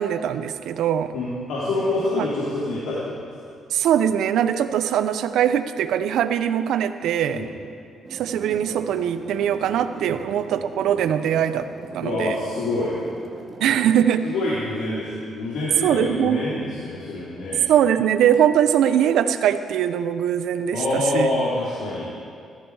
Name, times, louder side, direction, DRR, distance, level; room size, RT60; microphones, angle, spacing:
voice 1, 0.0-1.1 2.2-2.3 3.7-7.5 8.1-11.7 11.9-12.4 13.6-14.3 15.8-16.4 17.7-21.3, right 9 dB, 80° right, 11 dB, 0.7 m, -21 dB
voice 2, 1.1-3.1 3.4-3.5 7.3-7.5 10.1-10.2 12.0-13.0 14.2-17.6 20.7-22.1, left 2 dB, 85° left, -8 dB, 3.4 m, -26 dB
sound 1, 8.0-14.2, right 3 dB, 40° right, 1.9 m, -40 dB
18.0 x 14.5 x 4.9 m, 2.4 s
cardioid pair, 90°, 0 cm